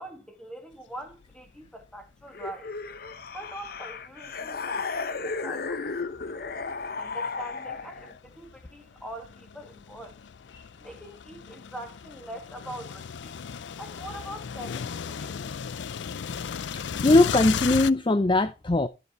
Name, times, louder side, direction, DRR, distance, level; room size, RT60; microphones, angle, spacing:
voice 1, 0.0-2.7 3.3-5.9 7.0-10.2 10.8-13.4 13.8-15.6, right 1 dB, 5° left, 2.1 m, -43 dB
sound 1, 1.1-1.3 1.8-1.9 2.9-4.6 5.2-17.9, left 7 dB, 80° left, 0.5 m, -36 dB
sound 2, 2.3-8.2, left 4 dB, 55° left, 0.9 m, -34 dB
voice 2, 16.7-18.9, left 2 dB, 25° left, 0.6 m, -21 dB
13.0 x 6.9 x 3.1 m
head